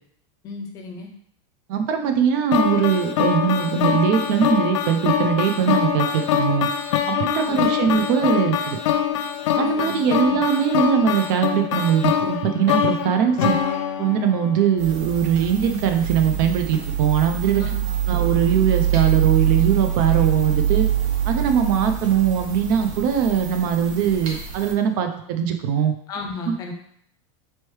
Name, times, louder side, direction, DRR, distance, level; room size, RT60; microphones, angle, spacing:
voice 1, 0.4-1.1 7.5-7.9 9.5-10.4 17.6-17.9 26.1-26.7, left 3 dB, 20° left, 3 dB, 0.4 m, -35 dB
voice 2, 1.7-6.7 7.1-8.8 9.6-13.6 14.0-17.6 18.1-20.9 21.3-25.9 26.5-26.7, right 8 dB, 40° right, 6 dB, 0.4 m, -21 dB
sound 1, 2.5-14.7, left 9 dB, 75° left, 0.4 m, -24 dB
sound 2, 14.8-24.7, right 9 dB, 90° right, 1.1 m, -24 dB
4.3 x 3.1 x 3.1 m, 0.68 s
supercardioid pair, 170°, 16 cm